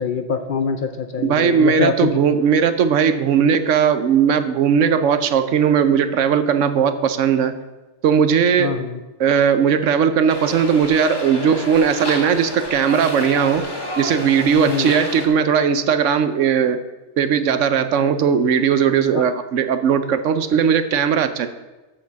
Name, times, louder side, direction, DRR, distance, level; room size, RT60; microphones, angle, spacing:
voice 1, 0.0-2.2 8.6-9.0 14.6-14.9 19.2-19.3, left 5 dB, 55° left, 8 dB, 0.6 m, -23 dB
voice 2, 1.2-7.5 8.0-8.8 9.2-13.7 14.0-16.8 17.2-21.5, right 7 dB, 75° right, 11 dB, 1.1 m, -18 dB
sound 1, 10.3-15.3, left 1 dB, 20° left, 1.7 m, -30 dB
7.5 x 6.5 x 6.9 m, 1.2 s
omnidirectional pair, 1.3 m